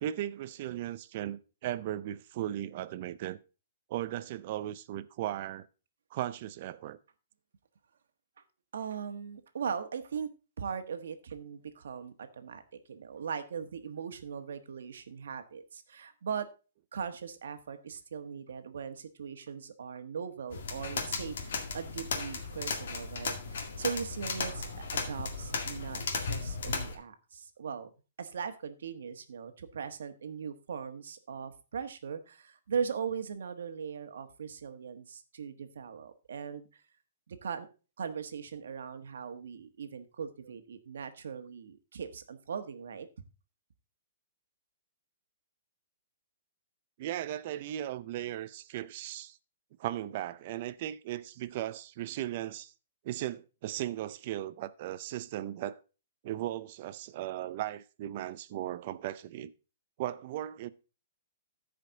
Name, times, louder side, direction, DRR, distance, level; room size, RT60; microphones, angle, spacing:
voice 1, 0.0-3.4 3.9-5.7 6.1-7.0 47.0-49.4 49.8-52.7 53.0-55.8 56.2-59.5 60.0-60.7, right 13 dB, 35° right, 0.5 m, -37 dB
voice 2, 8.7-10.3 10.6-16.5 16.9-27.9 28.2-36.7 37.3-37.7 38.0-43.1, right 6 dB, 75° right, 1.3 m, -39 dB
sound 1, 20.5-27.0, left 4 dB, 65° left, 2.0 m, -36 dB
14.0 x 5.1 x 3.9 m
hypercardioid pair, 175°, 0 cm